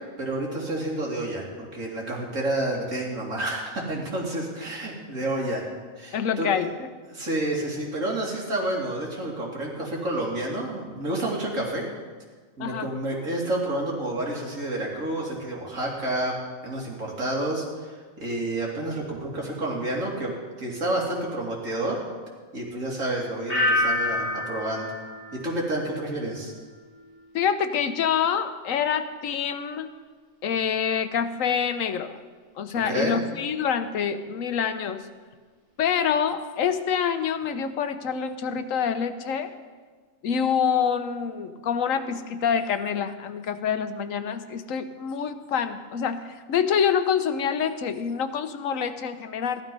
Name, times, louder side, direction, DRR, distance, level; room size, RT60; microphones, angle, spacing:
voice 1, 0.2-5.7 6.0-6.5 7.1-11.8 12.6-16.4 16.6-22.0 22.5-24.9 25.3-26.5 32.8-33.2, right 1 dB, 80° right, -2 dB, 3.1 m, -29 dB
voice 2, 6.1-6.9 12.6-12.9 27.3-29.9 30.4-32.2 32.6-35.0 35.8-39.5 40.2-49.6, left 7 dB, 90° left, 10 dB, 1.2 m, -26 dB
sound 1, 23.5-26.3 26.7-27.1, left 1 dB, 30° left, 4.7 m, -28 dB
14.5 x 11.5 x 5.4 m, 1.5 s
omnidirectional pair, 1.3 m